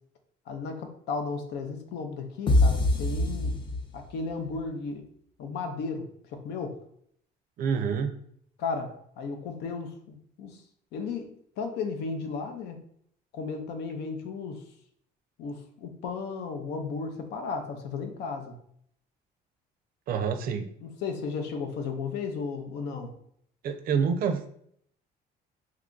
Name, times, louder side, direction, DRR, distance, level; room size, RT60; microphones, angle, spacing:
voice 1, 0.5-3.6 3.9-5.0 5.4-6.8 8.6-10.6 10.9-12.8 13.3-14.6 15.4-18.5 20.8-23.2, left 4 dB, 85° left, 5 dB, 0.6 m, -34 dB
sound 1, 2.5-4.3, left 2 dB, 30° left, 0.5 m, -24 dB
voice 2, 7.6-8.1 20.1-20.7 23.6-24.5, right 6 dB, 60° right, 8 dB, 0.5 m, -27 dB
2.9 x 2.3 x 3.7 m, 0.67 s
cardioid pair, 110°, 17 cm